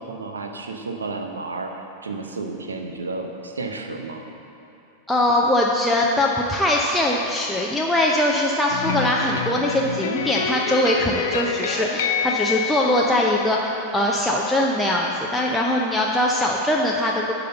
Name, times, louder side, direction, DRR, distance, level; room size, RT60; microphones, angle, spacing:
voice 1, 0.0-4.2, right 3 dB, 75° right, 4 dB, 0.8 m, -32 dB
voice 2, 5.1-17.3, left 1 dB, 5° left, -3 dB, 0.6 m, -21 dB
sound 1, 8.7-13.8, left 6 dB, 60° left, 0.6 m, -27 dB
10.0 x 4.2 x 6.8 m, 3.0 s
figure-of-eight pair, 90°, 0 cm